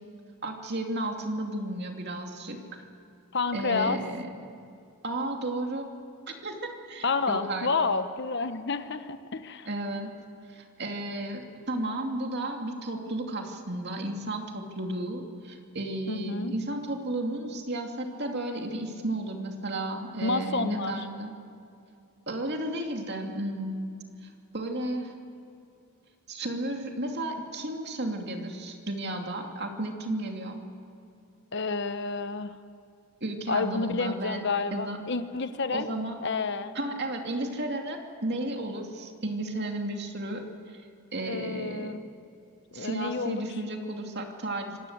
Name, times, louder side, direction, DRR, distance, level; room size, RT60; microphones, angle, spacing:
voice 1, 0.4-2.8 3.5-4.3 5.0-5.9 6.3-7.7 9.7-10.1 10.5-21.3 22.3-23.9 24.2-25.1 26.3-30.6 33.2-34.4 34.7-35.0 35.7-36.2 36.7-40.8 41.1-41.9 42.7-44.9, right 1 dB, 50° right, 3 dB, 2.6 m, -33 dB
voice 2, 3.3-4.0 7.0-9.7 16.1-16.6 20.2-21.1 31.5-32.5 33.5-35.9 36.2-36.7 41.2-42.1 42.7-43.5, left 4 dB, 50° left, 10 dB, 1.1 m, -29 dB
26.0 x 18.0 x 8.1 m, 2.5 s
head